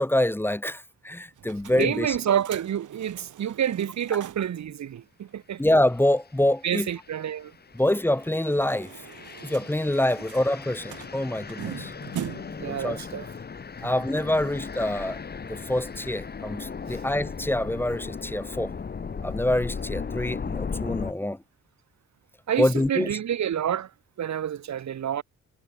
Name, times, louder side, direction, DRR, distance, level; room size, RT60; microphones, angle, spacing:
voice 1, 0.0-2.2 5.6-6.9 7.8-9.0 9.4-11.9 12.7-13.1 13.8-15.2 15.4-18.7 19.2-21.4 22.6-23.2, left 1 dB, 5° left, 2.0 m, -26 dB
sound 1, 1.4-4.6 4.9-5.0 5.3-5.4 8.1-12.7, right 10 dB, 85° right, 2.4 m, -42 dB
voice 2, 1.7-5.6 6.6-7.5 12.6-13.3 13.8-13.9 16.9-17.0 22.5-23.9 24.2-25.2, right 9 dB, 65° right, 1.7 m, -28 dB
sound 2, 5.9-6.1 6.7-21.1, left 5 dB, 35° left, 2.0 m, -37 dB
wide cardioid pair, 170°, 30 cm